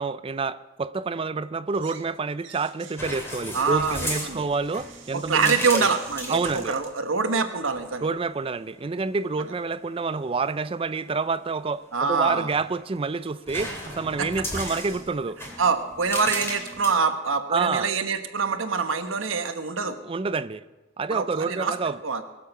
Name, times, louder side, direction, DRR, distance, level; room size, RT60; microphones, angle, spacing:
voice 1, 0.0-5.9 6.3-6.7 8.0-15.4 17.5-17.9 20.0-20.6 21.0-22.0, right 4 dB, 30° right, 0.4 m, -28 dB
sound 1, 1.7-2.1 2.4-6.9, right 8 dB, 70° right, 1.7 m, -48 dB
sound 2, 3.0-6.7 7.6-8.0 12.2-13.0 13.5-16.9, equal, 15° left, 2.7 m, -35 dB
voice 2, 3.5-4.5 5.1-8.1 11.9-12.5 14.2-14.3 15.6-20.0 21.1-21.7 22.0-22.2, right 5 dB, 90° right, 1.2 m, -25 dB
21.5 x 7.4 x 5.9 m
head